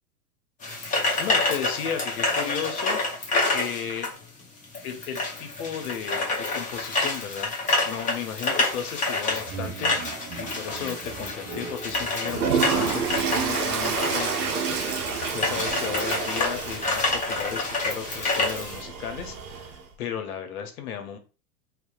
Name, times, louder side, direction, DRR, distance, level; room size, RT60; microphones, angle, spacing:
sound 1, 0.6-18.8, left 2 dB, 15° left, 0.6 m, -28 dB
voice 1, 1.2-4.2 4.8-7.5 7.8-19.7 20.0-21.2, left 8 dB, 75° left, 7 dB, 0.7 m, -35 dB
sound 2, 6.4-6.5 6.7-19.4, right 5 dB, 30° right, 0.4 m, -43 dB
Toilet flush, 12.3-19.8, right 6 dB, 85° right, 0.6 m, -29 dB
2.8 x 2.0 x 2.3 m, 0.34 s
hypercardioid pair, 105°, 44 cm